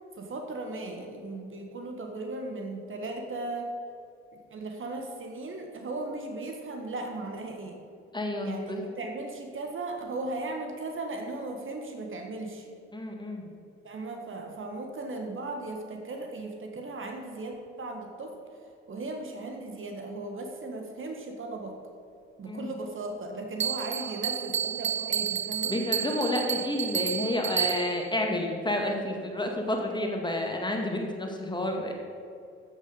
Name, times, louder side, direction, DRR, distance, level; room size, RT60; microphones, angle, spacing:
voice 1, 0.2-3.7 4.3-7.8 8.4-12.7 13.8-18.6 18.9-21.8 22.4-25.7, right 2 dB, 40° right, 3 dB, 1.7 m, -37 dB
voice 2, 8.1-8.8 12.9-13.5 22.5-22.7 25.7-31.9, left 1 dB, 15° left, 1 dB, 2.1 m, -30 dB
Bell, 23.6-28.1, right 9 dB, 20° right, 0.4 m, -31 dB
14.5 x 6.8 x 5.3 m, 2.5 s
figure-of-eight pair, 45°, 33 cm